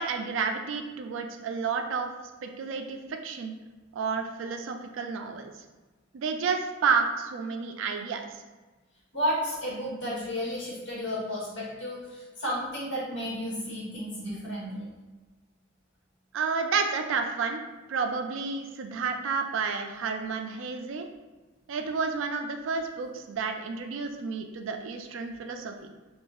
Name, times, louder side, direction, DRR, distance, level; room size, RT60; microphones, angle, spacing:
voice 1, 0.0-2.1 2.4-3.6 3.9-5.5 6.1-8.3 16.3-17.6 17.9-21.1 21.7-25.7, right 5 dB, 75° right, 5 dB, 0.3 m, -30 dB
voice 2, 9.1-14.9, equal, 60° left, -6 dB, 1.3 m, -32 dB
3.1 x 2.0 x 3.4 m, 1.2 s
head